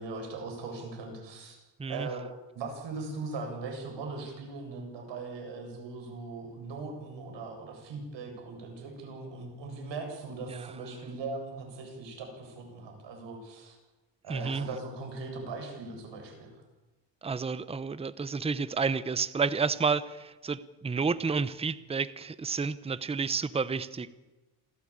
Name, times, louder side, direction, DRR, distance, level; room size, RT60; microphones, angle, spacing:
voice 1, 0.0-1.6 1.9-2.2 2.5-13.8 14.2-16.6, right 3 dB, 80° right, 3 dB, 7.6 m, -39 dB
voice 2, 14.3-14.7 17.2-24.1, right 5 dB, 15° right, 16 dB, 0.7 m, -30 dB
27.5 x 16.5 x 8.8 m, 1.1 s
cardioid pair, 145°, 43 cm